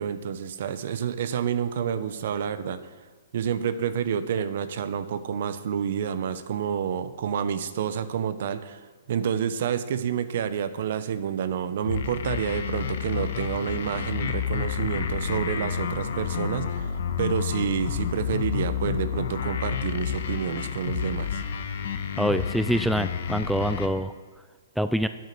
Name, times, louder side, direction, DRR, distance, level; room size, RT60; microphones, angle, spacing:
voice 1, 0.0-2.8 3.3-8.8 9.1-16.9 17.2-21.4, right 8 dB, 60° right, 12 dB, 0.7 m, -29 dB
sound 1, 11.9-23.9, left 7 dB, 60° left, 1.0 m, -30 dB
voice 2, 22.2-24.1 24.8-25.1, equal, ahead, 11 dB, 0.3 m, -25 dB
9.0 x 8.1 x 6.0 m, 1.4 s
hypercardioid pair, 140°, 0 cm